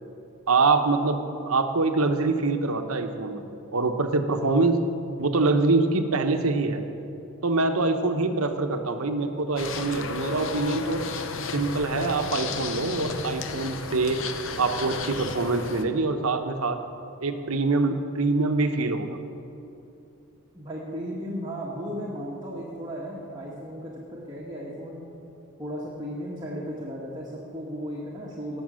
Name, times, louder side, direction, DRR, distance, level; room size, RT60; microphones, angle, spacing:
voice 1, 0.5-4.8 5.2-6.8 7.4-11.0 11.5-14.2 14.6-16.8 17.2-19.2, right 3 dB, 75° right, 7 dB, 1.0 m, -24 dB
sound 1, 9.6-15.8, left 4 dB, 55° left, 0.8 m, -33 dB
voice 2, 20.5-25.1 25.6-28.6, equal, 20° right, -5 dB, 1.5 m, -35 dB
18.0 x 7.2 x 6.4 m, 2.8 s
head